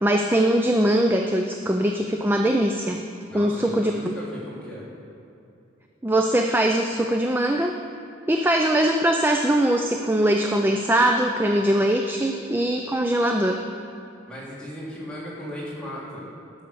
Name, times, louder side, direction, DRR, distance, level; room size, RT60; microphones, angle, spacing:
voice 1, 0.0-3.0 3.3-4.0 6.0-7.8 8.3-13.6, right 1 dB, 10° right, 4 dB, 0.4 m, -21 dB
voice 2, 3.3-4.9 14.3-16.3, equal, 5° left, -8 dB, 2.9 m, -36 dB
12.5 x 6.4 x 7.0 m, 2.8 s
head